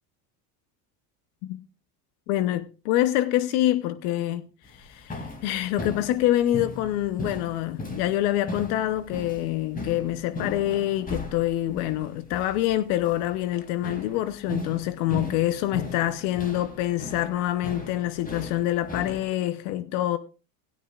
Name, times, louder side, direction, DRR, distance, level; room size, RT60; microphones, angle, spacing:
voice 1, 2.3-20.2, left 14 dB, 75° left, 0.9 m, -26 dB
sound 1, 4.6-19.3, left 1 dB, 20° left, 2.6 m, -38 dB
17.0 x 11.5 x 2.4 m
supercardioid pair, 120°, 43 cm